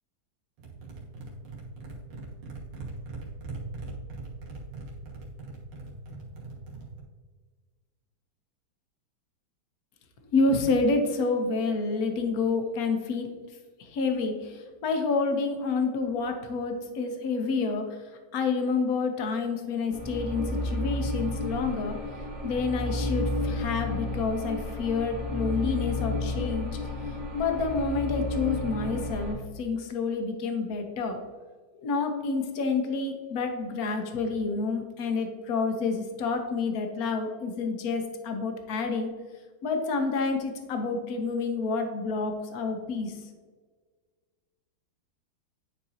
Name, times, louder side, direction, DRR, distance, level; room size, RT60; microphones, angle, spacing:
sound 1, 0.6-7.0, right 3 dB, 85° right, 2.2 m, -40 dB
voice 1, 10.3-13.3 13.8-17.8 18.3-22.0 22.4-26.8 27.3-31.2 31.7-39.1 39.6-43.2, left 4 dB, 55° left, 5 dB, 1.1 m, -28 dB
sound 2, 19.9-29.3, left 2 dB, 35° right, 1.9 m, -31 dB
10.0 x 4.5 x 2.8 m, 1.5 s
omnidirectional pair, 2.3 m